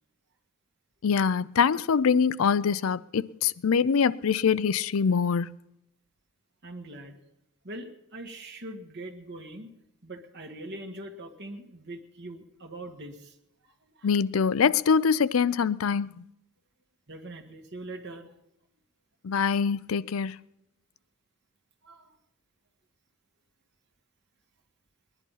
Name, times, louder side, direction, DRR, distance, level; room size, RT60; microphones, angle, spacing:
voice 1, 1.0-5.6 14.0-16.1 19.2-20.4, left 6 dB, 85° left, 0.5 m, -24 dB
voice 2, 6.6-7.2 7.6-9.7 10.0-13.4 13.8-14.1 17.1-18.4 21.8-22.2, right 1 dB, 55° right, 1.6 m, -42 dB
20.5 x 11.0 x 5.6 m
head